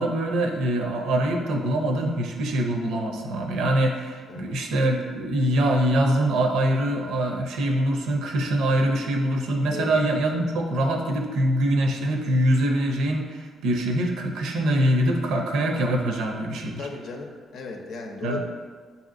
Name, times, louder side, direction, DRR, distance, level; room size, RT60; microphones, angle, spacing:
voice 1, 0.0-16.8 18.2-18.4, right 1 dB, 85° right, 2 dB, 0.6 m, -24 dB
voice 2, 16.8-18.4, left 3 dB, 75° left, 2 dB, 0.6 m, -36 dB
7.0 x 2.8 x 2.5 m, 1.5 s
cardioid pair, 90°, 0 cm